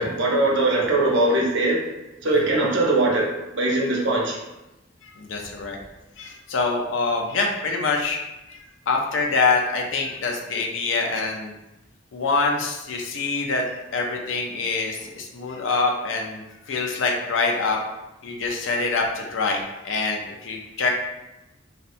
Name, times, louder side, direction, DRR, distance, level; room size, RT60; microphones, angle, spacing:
voice 1, 0.0-1.8 2.2-4.4, right 2 dB, 65° right, -2 dB, 0.6 m, -21 dB
voice 2, 5.0-5.8 6.2-8.2 8.5-11.5 12.1-13.6 13.9-17.8 18.2-20.9, left 3 dB, 75° left, 1 dB, 0.4 m, -25 dB
2.7 x 2.1 x 2.5 m, 0.98 s
head